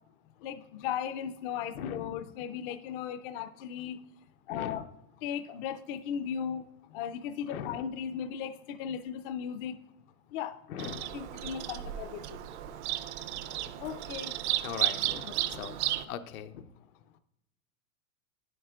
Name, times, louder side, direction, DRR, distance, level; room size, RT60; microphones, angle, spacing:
voice 1, 0.4-4.0 4.5-4.8 5.2-6.6 6.9-9.8 10.3-10.6 11.1-12.4 13.8-14.3 15.2-15.5, left 8 dB, 45° left, 11 dB, 0.4 m, -37 dB
voice 2, 1.8-2.2 4.5-4.8 7.5-7.8 10.7-11.2 14.6-15.8 16.1-16.7, left 8 dB, 85° left, 9 dB, 0.7 m, -40 dB
Bird vocalization bird call bird song, 10.8-16.0, right 14 dB, 55° right, 0.5 m, -34 dB
9.6 x 7.8 x 2.4 m, 0.87 s
supercardioid pair, 135°, 42 cm